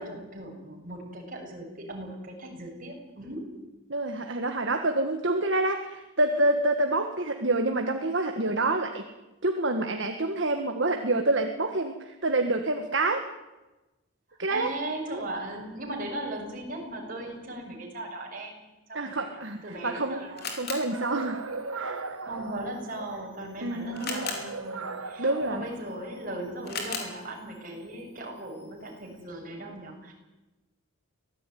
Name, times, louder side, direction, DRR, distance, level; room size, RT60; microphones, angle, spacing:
voice 1, 0.0-3.4 14.5-20.4 22.2-30.1, right 1 dB, 40° right, 1 dB, 7.1 m, -38 dB
voice 2, 3.9-9.1 9.4-13.2 14.4-14.7 15.1-15.2 18.9-20.2 20.5-21.4 21.7-22.0 23.6-24.2 25.2-25.7, right 2 dB, 60° right, 5 dB, 1.7 m, -27 dB
Camera, 19.4-29.3, left 4 dB, 50° left, 4.8 m, -42 dB
sound 1, 20.8-23.3 23.9-26.3, right 4 dB, 80° right, 1.8 m, -38 dB
24.5 x 18.0 x 9.4 m, 1.1 s
head